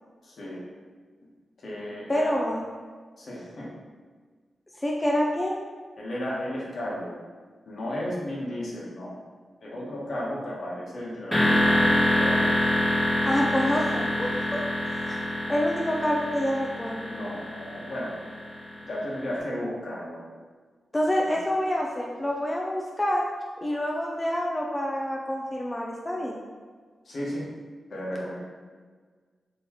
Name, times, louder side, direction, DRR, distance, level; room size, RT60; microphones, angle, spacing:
voice 1, 0.2-0.6 1.6-2.5 3.2-3.7 6.0-7.2 7.7-9.1 9.6-12.5 17.0-18.2 18.8-20.3 27.0-27.5 27.9-28.4, equal, 65° left, -5 dB, 1.1 m, -34 dB
voice 2, 2.1-2.6 4.8-5.6 13.2-14.6 14.9-15.2 15.5-17.1 20.9-23.2 23.6-26.4, equal, 20° left, -2 dB, 0.4 m, -27 dB
sound 1, 11.3-19.1, left 1 dB, 5° left, 1.2 m, -26 dB
3.7 x 3.0 x 3.0 m, 1.5 s
cardioid pair, 65°, 0 cm